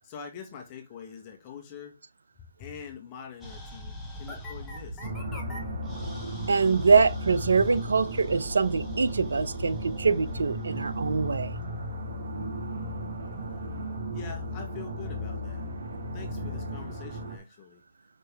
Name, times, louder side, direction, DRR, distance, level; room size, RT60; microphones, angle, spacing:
voice 1, 0.0-2.0 2.4-5.1 13.5-13.6 14.1-15.6 16.1-17.8, left 7 dB, 30° left, 1.7 m, -44 dB
sound 1, 3.4-11.9, equal, 5° left, 2.1 m, -41 dB
sound 2, 5.0-17.4, equal, 55° right, 2.8 m, -35 dB
voice 2, 6.5-11.6, right 5 dB, 80° right, 0.8 m, -24 dB
6.6 x 5.4 x 3.5 m
hypercardioid pair, 145°, 0 cm